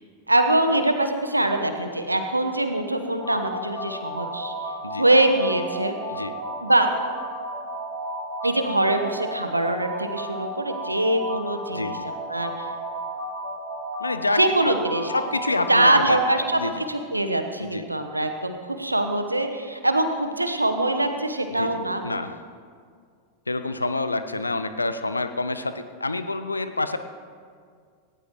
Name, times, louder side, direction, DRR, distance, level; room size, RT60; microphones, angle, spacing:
voice 1, 0.3-4.5 5.0-5.9 6.6-6.9 8.4-11.9 12.3-12.7 14.4-15.1 15.7-16.6 16.9-22.0, right 1 dB, 85° right, 7 dB, 1.1 m, -23 dB
sound 1, 3.2-16.4, right 1 dB, 45° left, 4.0 m, -33 dB
voice 2, 11.7-12.1 14.0-14.7 15.1-16.2 16.6-16.7 17.6-17.9 21.5-22.4 23.5-27.0, left 2 dB, 80° left, 11 dB, 0.7 m, -28 dB
18.0 x 17.5 x 3.1 m, 2.1 s
figure-of-eight pair, 90°, 0 cm